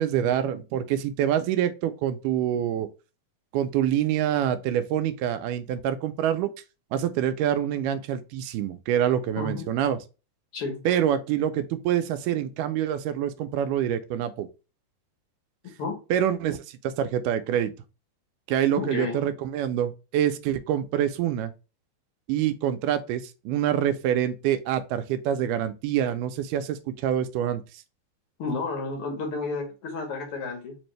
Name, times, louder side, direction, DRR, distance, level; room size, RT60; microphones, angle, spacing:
voice 1, 0.0-2.9 3.5-6.5 6.9-10.0 10.9-14.5 16.1-17.7 18.5-21.5 22.3-27.6, right 10 dB, 85° right, 2.1 m, -26 dB
voice 2, 18.8-19.2 28.4-30.8, left 3 dB, 70° left, 1.4 m, -31 dB
4.9 x 2.6 x 3.1 m
omnidirectional pair, 3.7 m